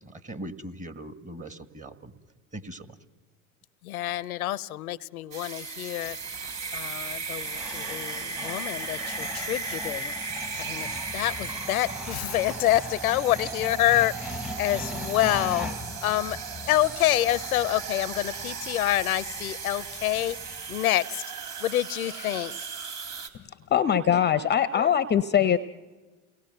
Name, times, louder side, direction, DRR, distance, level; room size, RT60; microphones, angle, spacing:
voice 1, 0.2-2.1 2.5-2.9, right 1 dB, 20° right, 1.7 m, -40 dB
voice 2, 3.8-6.2 6.7-10.1 10.6-15.7 16.0-16.4 16.7-21.2 21.6-22.5, left 14 dB, 85° left, 0.7 m, -27 dB
sound 1, 5.3-23.3, right 5 dB, 50° right, 3.3 m, -36 dB
sound 2, 6.0-20.9, left 2 dB, ahead, 1.1 m, -41 dB
voice 3, 23.7-25.6, left 9 dB, 25° left, 0.7 m, -22 dB
29.5 x 19.0 x 7.8 m
hypercardioid pair, 90°, 42 cm